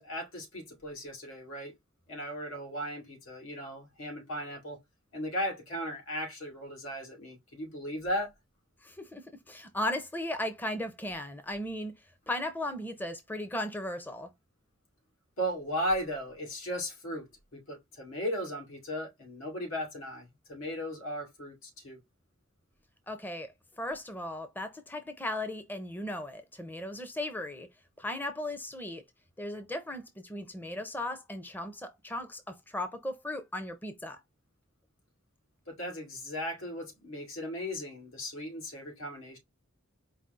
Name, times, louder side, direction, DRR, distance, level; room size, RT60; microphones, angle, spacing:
voice 1, 0.0-1.7 2.1-4.8 5.1-8.3 15.4-22.0 35.7-39.4, equal, 85° left, 2.5 m, -36 dB
voice 2, 8.8-11.9 12.3-14.3 23.1-27.7 28.0-29.0 29.4-34.2, left 1 dB, 10° left, 0.5 m, -36 dB
4.7 x 2.3 x 3.9 m
head